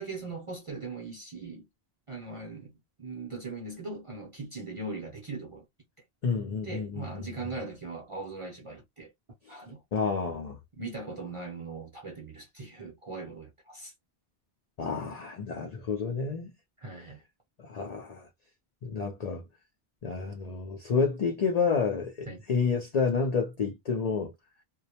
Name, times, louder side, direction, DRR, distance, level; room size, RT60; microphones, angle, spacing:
voice 1, 0.0-1.7 2.1-2.7 3.0-5.6 6.6-9.1 9.5-9.8 10.7-13.9 16.8-17.2 22.3-22.4, right 3 dB, 40° right, 0.6 m, -40 dB
voice 2, 6.2-7.3 9.9-10.6 14.8-16.5 17.7-18.3 18.8-19.4 20.0-24.3, left 5 dB, 50° left, 0.5 m, -29 dB
2.2 x 2.0 x 2.7 m
omnidirectional pair, 1.0 m